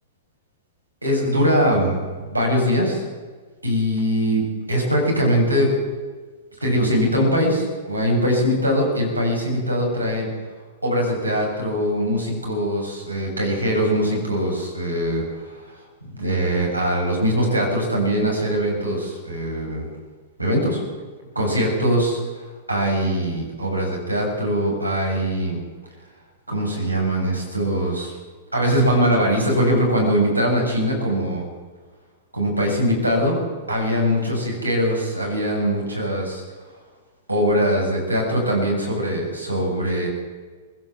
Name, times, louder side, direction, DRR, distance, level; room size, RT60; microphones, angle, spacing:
voice 1, 1.0-3.0 3.6-5.7 6.6-10.3 10.8-15.6 16.1-19.9 20.4-20.8 21.3-22.2 22.7-25.6 26.5-28.1 28.5-31.5 32.3-33.4 33.7-36.4 37.3-40.1, equal, 85° right, 0 dB, 7.8 m, -22 dB
22.0 x 16.5 x 7.5 m, 1.4 s
figure-of-eight pair, 105°, 0 cm